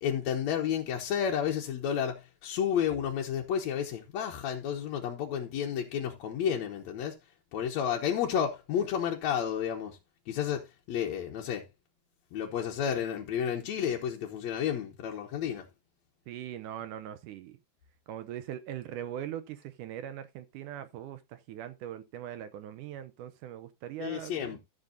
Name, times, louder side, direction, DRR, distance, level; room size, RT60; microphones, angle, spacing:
voice 1, 0.0-7.2 7.5-10.0 10.3-11.7 12.3-15.7 24.0-24.6, left 8 dB, 65° left, 1.9 m, -31 dB
voice 2, 16.3-17.6 18.1-24.6, right 11 dB, 80° right, 2.0 m, -41 dB
14.5 x 7.1 x 2.7 m
omnidirectional pair, 4.2 m